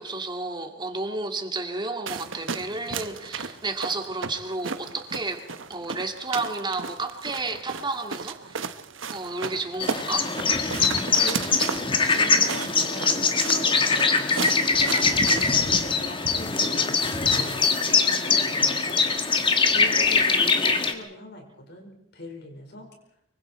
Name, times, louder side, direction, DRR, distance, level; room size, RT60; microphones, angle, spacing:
voice 1, 0.0-5.4 5.7-8.7 9.1-10.3, right 3 dB, 25° right, 5 dB, 2.2 m, -31 dB
sound 1, 2.1-15.7, right 5 dB, 85° right, 1.2 m, -35 dB
sound 2, 9.8-20.9, left 4 dB, 25° left, 1.6 m, -22 dB
voice 2, 11.2-14.4 14.8-19.4 19.7-22.9, left 1 dB, 60° left, 3 dB, 4.9 m, -41 dB
25.0 x 23.5 x 4.5 m, 0.75 s
head